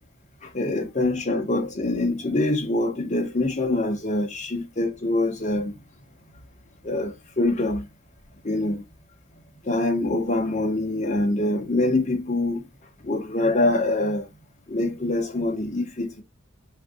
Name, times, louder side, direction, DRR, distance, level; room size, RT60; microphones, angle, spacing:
voice 1, 0.4-5.8 6.8-7.9 8.4-8.8 9.6-12.7 13.0-14.3 14.7-16.2, left 2 dB, 35° left, 1.1 m, -24 dB
3.7 x 3.2 x 2.3 m
head